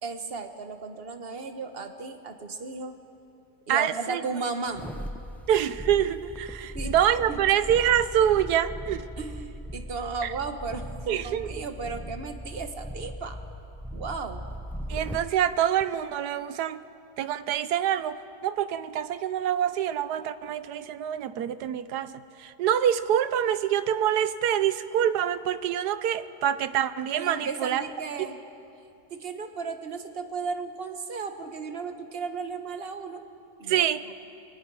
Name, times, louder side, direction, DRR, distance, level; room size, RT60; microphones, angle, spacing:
voice 1, 0.0-3.0 3.7-4.9 6.7-6.9 7.3-7.4 9.2-13.4 13.9-14.4 27.2-28.4 29.1-33.2 33.6-34.1, right 4 dB, 40° right, 7 dB, 1.3 m, -35 dB
voice 2, 3.7-4.2 5.5-9.1 10.2-10.3 11.1-11.6 14.9-16.8 17.2-27.8 33.7-34.0, right 10 dB, 85° right, 13 dB, 1.3 m, -26 dB
sound 1, 4.7-15.3 15.8-15.9, equal, ahead, 0.3 m, -39 dB
27.5 x 23.5 x 4.8 m, 2.6 s
omnidirectional pair, 1.7 m